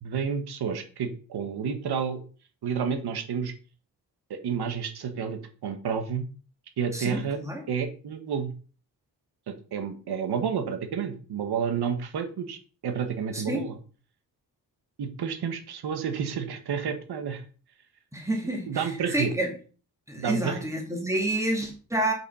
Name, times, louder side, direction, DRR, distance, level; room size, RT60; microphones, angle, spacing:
voice 1, 0.0-2.2 2.6-3.5 4.3-6.2 6.8-7.4 7.7-8.5 9.5-13.8 15.0-17.4 18.7-19.3 20.2-20.7, right 7 dB, 85° right, 7 dB, 1.5 m, -30 dB
voice 2, 6.9-7.6 13.3-13.7 18.1-18.9 19.1-19.5 20.1-22.1, right 1 dB, 10° right, 1 dB, 2.3 m, -28 dB
7.8 x 5.9 x 5.5 m, 0.38 s
wide cardioid pair, 170°, 38 cm